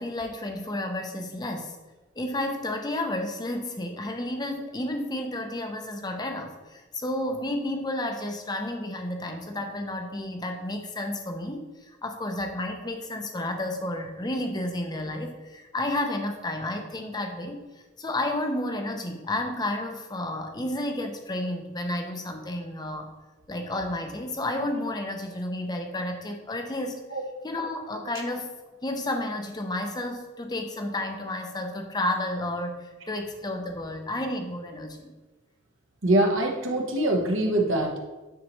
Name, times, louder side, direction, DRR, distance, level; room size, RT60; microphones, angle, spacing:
voice 1, 0.0-1.8 2.2-17.6 18.0-23.1 23.5-27.0 27.4-28.5 28.8-35.1, left 1 dB, 20° left, 4 dB, 0.6 m, -31 dB
voice 2, 36.0-38.0, right 1 dB, 60° right, 2 dB, 1.0 m, -23 dB
9.5 x 4.0 x 3.1 m, 1.2 s
head